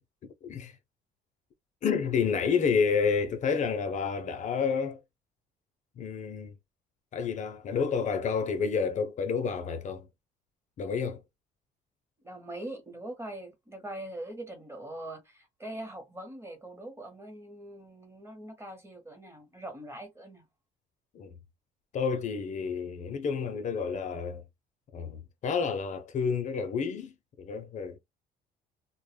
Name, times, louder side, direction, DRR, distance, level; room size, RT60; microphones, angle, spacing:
voice 1, 0.4-0.7 1.8-5.0 6.0-6.5 7.1-10.1 10.8-11.2 21.1-21.4 21.9-24.4 24.9-27.1 27.4-28.0, left 6 dB, 45° left, 0.5 m, -29 dB
voice 2, 12.2-20.4, right 1 dB, 15° right, 0.8 m, -42 dB
2.1 x 2.0 x 3.1 m
cardioid pair, 110°, 17 cm